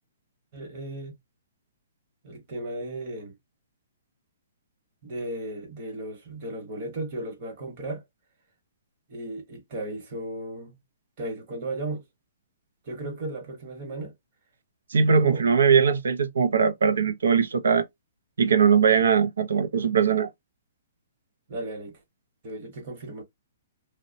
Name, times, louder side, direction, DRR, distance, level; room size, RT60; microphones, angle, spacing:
voice 1, 0.5-1.1 2.2-3.4 5.0-8.0 9.1-10.8 11.2-12.0 12.8-14.1 15.1-15.5 21.5-22.0 22.4-23.2, right 2 dB, 35° right, 1.0 m, -35 dB
voice 2, 14.9-17.8 18.4-20.3, right 6 dB, 90° right, 0.5 m, -20 dB
2.8 x 2.1 x 2.6 m
hypercardioid pair, 165°, 0 cm